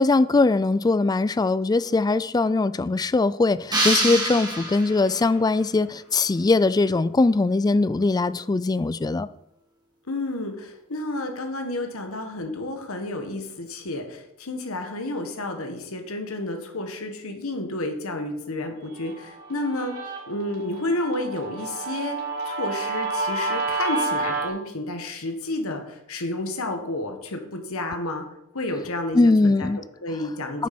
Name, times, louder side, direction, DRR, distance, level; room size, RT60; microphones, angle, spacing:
voice 1, 0.0-9.3 29.1-29.8 30.6-30.7, left 3 dB, 20° left, 0.3 m, -21 dB
sound 1, 3.7-5.3, right 1 dB, 20° right, 2.6 m, -25 dB
voice 2, 10.1-22.2 22.5-28.3 28.5-30.7, left 2 dB, 70° left, 1.7 m, -31 dB
Guitar, 19.0-24.5, right 3 dB, 85° right, 3.8 m, -30 dB
9.2 x 7.3 x 6.0 m
head